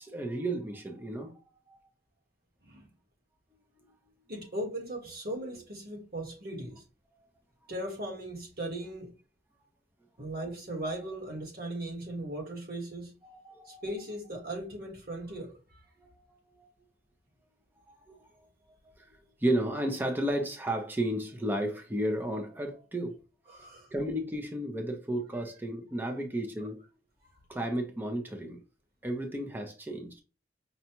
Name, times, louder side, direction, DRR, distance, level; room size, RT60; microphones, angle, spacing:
voice 1, 0.0-1.3 1.7-1.8 3.8-3.9 13.2-13.8 16.1-16.2 16.6-16.7 17.9-18.5 18.8-23.2 23.5-26.8 27.5-28.6 29.0-30.2, right 1 dB, 10° right, 0.6 m, -33 dB
voice 2, 4.3-6.8 7.7-9.1 10.2-13.1 13.6-15.8 23.5-23.9, right 1 dB, 60° right, 1.5 m, -38 dB
5.2 x 2.3 x 2.9 m
head